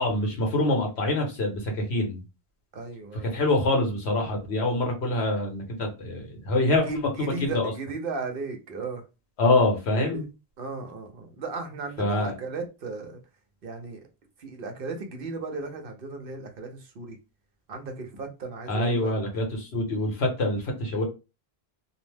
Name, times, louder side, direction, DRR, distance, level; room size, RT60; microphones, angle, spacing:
voice 1, 0.0-2.2 3.1-6.9 7.2-7.7 9.4-10.3 12.0-12.3 18.7-21.0, left 2 dB, 80° left, 1.2 m, -25 dB
voice 2, 2.7-3.3 6.8-9.0 9.9-10.3 10.6-13.2 13.6-14.0 14.4-17.2 17.7-19.1, right 3 dB, 65° right, 0.8 m, -35 dB
2.7 x 2.0 x 3.2 m
omnidirectional pair, 1.1 m